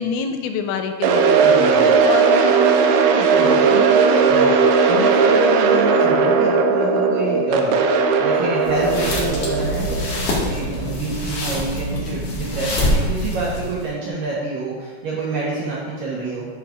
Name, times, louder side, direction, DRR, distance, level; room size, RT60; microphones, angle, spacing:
voice 1, 0.0-1.6 2.0-2.7 3.1-3.5, left 7 dB, 85° left, 6 dB, 2.8 m, -26 dB
sound 1, 1.0-11.1, right 5 dB, 90° right, 3.1 m, -17 dB
voice 2, 1.4-1.9 3.4-10.2 10.5-16.5, right 3 dB, 70° right, -5 dB, 2.2 m, -27 dB
sound 2, 8.6-13.9, left 1 dB, 60° left, 1.7 m, -25 dB
11.5 x 8.9 x 2.5 m, 1.5 s
omnidirectional pair, 5.4 m